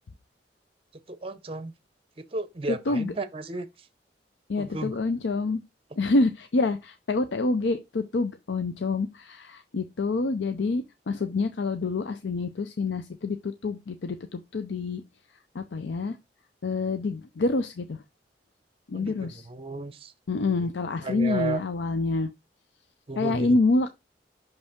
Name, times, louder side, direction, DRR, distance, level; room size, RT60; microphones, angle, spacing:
voice 1, 1.1-1.7 2.2-3.9 4.6-5.0 18.9-20.1 20.5-20.7 21.0-21.6 23.1-23.6, right 3 dB, 35° right, 0.7 m, -34 dB
voice 2, 2.7-3.1 4.5-5.6 6.0-15.0 15.5-16.2 16.6-18.0 18.9-19.4 20.3-22.3 23.2-23.9, left 3 dB, 90° left, 0.6 m, -27 dB
6.1 x 5.2 x 3.5 m
head